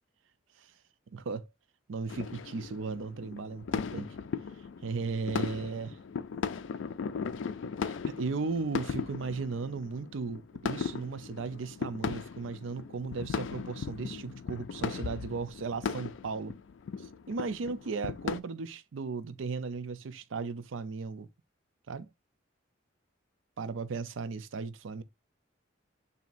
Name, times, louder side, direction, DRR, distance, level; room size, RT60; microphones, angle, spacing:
voice 1, 1.1-1.5 1.9-4.2 4.8-6.0 8.1-16.5 17.0-21.3 21.9-22.1 23.6-25.0, right 4 dB, 80° right, 0.5 m, -36 dB
sound 1, 2.1-18.4, left 5 dB, 75° left, 0.4 m, -37 dB
7.0 x 2.8 x 2.5 m
head